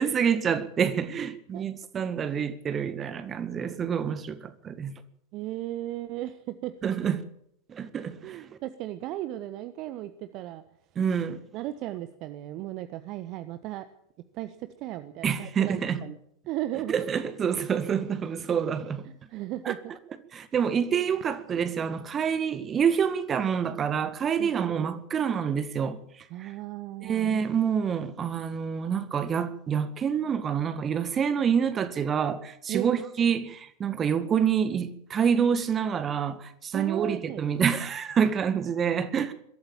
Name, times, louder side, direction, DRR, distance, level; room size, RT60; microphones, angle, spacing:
voice 1, 0.0-4.9 6.8-7.2 7.7-8.4 11.0-11.4 15.2-16.0 16.9-19.1 19.7-19.8 20.3-26.0 26.4-26.5 27.0-39.3, right 7 dB, 25° right, 1.9 m, -27 dB
voice 2, 5.3-6.7 8.2-10.6 11.5-13.8 14.3-16.2 16.5-17.0 19.0-19.9 24.4-24.8 26.3-27.3 32.7-32.9 36.7-37.4, right 14 dB, 40° right, 1.2 m, -36 dB
22.0 x 13.5 x 8.9 m
figure-of-eight pair, 90°, 0 cm